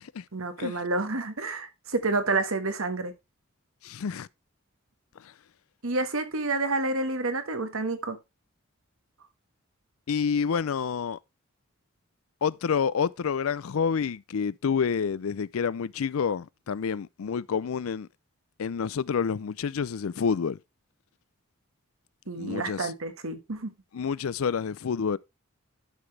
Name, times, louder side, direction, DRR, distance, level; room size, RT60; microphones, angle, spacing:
voice 1, 0.3-3.1 5.8-8.2 22.3-23.7, right 3 dB, 75° right, 1.4 m, -29 dB
voice 2, 3.8-4.3 5.2-5.3 10.1-11.2 12.4-18.1 18.6-20.6 22.4-22.9 23.9-25.2, left 6 dB, 80° left, 0.4 m, -28 dB
11.0 x 6.0 x 3.3 m
head